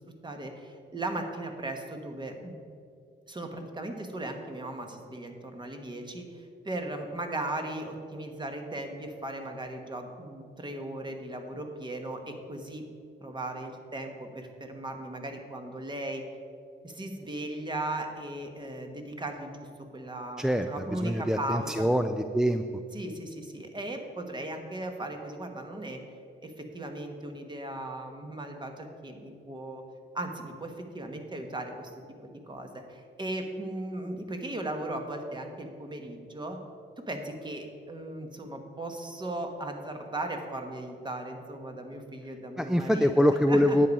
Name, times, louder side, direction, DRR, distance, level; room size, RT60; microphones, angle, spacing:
voice 1, 0.2-2.6 3.3-12.8 13.2-16.2 16.8-21.9 22.9-26.0 26.4-29.8 30.1-31.9 32.2-36.6 37.1-43.1 43.5-43.8, right 1 dB, 25° right, 4 dB, 1.3 m, -37 dB
voice 2, 20.4-22.6 42.6-43.9, equal, 5° right, 7 dB, 0.3 m, -24 dB
10.5 x 8.5 x 5.3 m, 2.4 s
cardioid pair, 110°, 19 cm